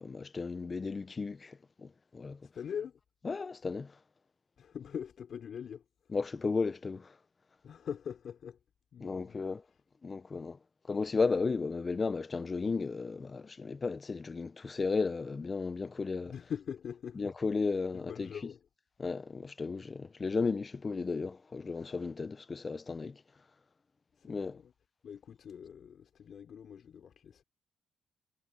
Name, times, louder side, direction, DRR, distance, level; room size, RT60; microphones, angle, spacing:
voice 1, 0.0-2.4 3.2-4.0 6.1-7.2 9.0-9.6 10.0-10.6 10.9-16.3 17.2-18.3 19.0-23.2 24.3-24.6, left 4 dB, 30° left, 0.7 m, -34 dB
voice 2, 2.4-3.0 4.6-5.8 7.6-8.6 8.9-9.4 16.3-17.3 17.9-18.7 24.2-24.7 25.0-27.4, left 8 dB, 60° left, 4.2 m, -43 dB
cardioid pair, 90°, 0 cm